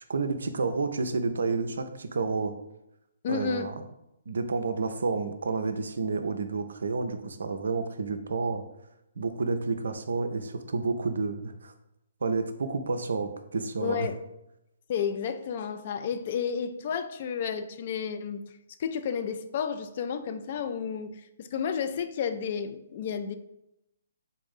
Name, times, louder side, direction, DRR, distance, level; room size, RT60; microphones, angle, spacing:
voice 1, 0.1-2.5 3.3-3.7 4.3-8.6 9.2-11.7 12.2-14.1, right 4 dB, 60° right, 8 dB, 0.4 m, -30 dB
voice 2, 3.2-3.7 13.8-14.2 14.9-18.4 18.8-23.4, left 7 dB, 40° left, 9 dB, 0.3 m, -31 dB
3.6 x 2.6 x 3.9 m, 0.85 s
figure-of-eight pair, 130°, 0 cm